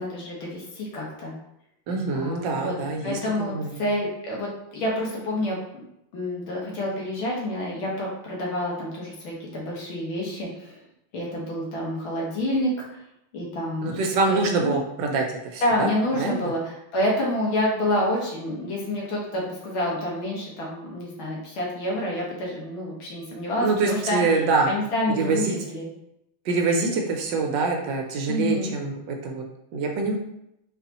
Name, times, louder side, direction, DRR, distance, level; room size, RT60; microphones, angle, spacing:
voice 1, 0.0-1.3 2.1-2.7 3.0-5.8 6.1-10.8 11.1-12.7 13.3-14.0 14.3-14.8 15.6-24.2 24.6-25.9 28.3-28.7, left 1 dB, 85° left, -3 dB, 2.1 m, -28 dB
voice 2, 1.9-3.8 13.8-15.3 15.5-15.9 16.2-16.5 23.6-24.7 25.2-25.6 26.5-29.4 29.7-30.2, right 3 dB, 70° right, 2 dB, 1.3 m, -25 dB
4.1 x 4.1 x 2.9 m, 0.80 s
omnidirectional pair, 2.2 m